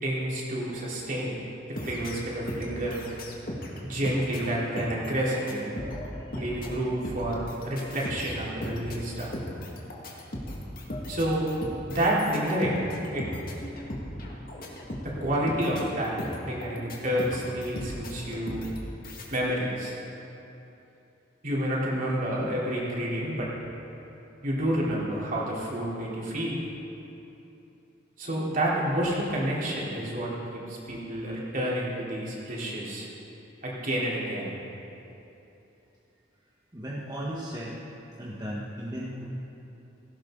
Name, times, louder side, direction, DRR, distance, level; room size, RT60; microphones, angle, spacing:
voice 1, 0.0-1.4 1.8-3.0 3.8-5.7 6.3-9.4 11.1-11.5 11.9-13.3 15.0-16.2 16.5-18.6 19.3-20.0 21.4-23.5 24.4-26.6 28.2-33.1 33.6-34.5, right 1 dB, 45° right, -6 dB, 3.8 m, -29 dB
sound 1, 1.8-3.8 4.0-19.4, left 1 dB, 50° left, 2.1 m, -37 dB
voice 2, 36.7-37.8 38.2-39.3, equal, 20° right, -6 dB, 1.5 m, -35 dB
17.5 x 16.5 x 4.0 m, 3.0 s
head